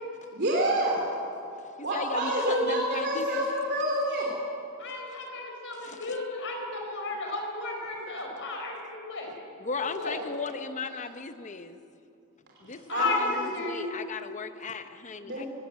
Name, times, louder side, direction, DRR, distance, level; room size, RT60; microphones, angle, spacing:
voice 1, 0.3-1.0 1.8-4.3 12.9-13.1 15.2-15.5, right 1 dB, 50° right, -2 dB, 3.1 m, -27 dB
voice 2, 1.8-3.4 5.7-6.3 9.6-11.8 12.6-15.5, left 4 dB, 35° left, 9 dB, 1.0 m, -36 dB
voice 3, 4.8-9.3 9.8-10.2 12.9-13.9, left 3 dB, 60° left, 2 dB, 4.3 m, -33 dB
18.0 x 18.0 x 8.8 m, 2.6 s
head